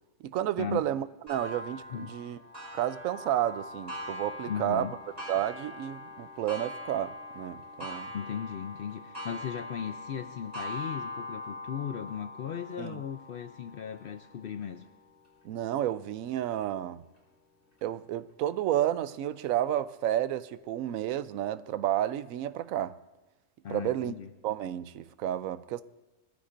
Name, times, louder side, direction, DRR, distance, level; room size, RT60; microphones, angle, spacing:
voice 1, 0.2-2.4 2.7-4.9 5.3-8.1 12.8-13.0 15.4-17.0 17.8-23.0 23.7-24.2 24.4-25.8, right 12 dB, 85° right, 1.0 m, -31 dB
Clock, 1.3-16.6 17.2-17.3 17.8-17.9 18.9-19.0, left 1 dB, 10° right, 3.7 m, -42 dB
voice 2, 4.5-5.0 8.1-14.8 23.6-24.3, left 8 dB, 60° left, 0.6 m, -37 dB
21.0 x 14.0 x 2.6 m
omnidirectional pair, 1.4 m